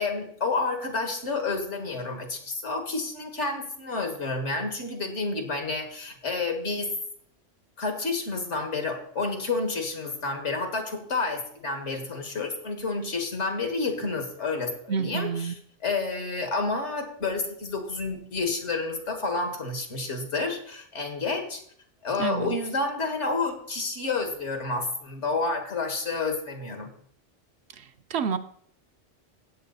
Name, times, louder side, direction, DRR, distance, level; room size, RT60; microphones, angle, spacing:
voice 1, 0.0-7.0 7.8-21.6 22.0-26.9, left 3 dB, 70° left, 4 dB, 2.2 m, -30 dB
voice 2, 14.9-15.5 22.2-22.6 27.8-27.9 28.1-28.4, right 6 dB, 65° right, 9 dB, 0.9 m, -28 dB
16.0 x 7.6 x 4.1 m, 0.62 s
omnidirectional pair, 1.2 m